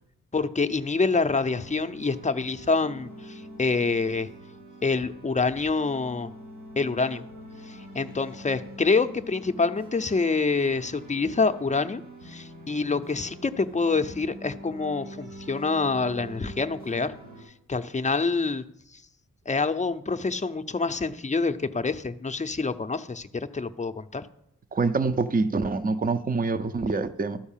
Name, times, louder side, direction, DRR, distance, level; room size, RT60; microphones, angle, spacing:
voice 1, 0.3-4.3 4.8-6.3 6.8-7.2 7.6-17.1 17.7-18.6 18.9-19.0 19.5-24.2, left 4 dB, 20° left, 9 dB, 0.6 m, -26 dB
sound 1, 1.4-17.4, right 1 dB, 90° right, 5.3 m, -45 dB
voice 2, 24.7-27.4, right 3 dB, 25° right, 12 dB, 0.6 m, -25 dB
12.5 x 4.6 x 7.3 m, 0.77 s
cardioid pair, 60°, 34 cm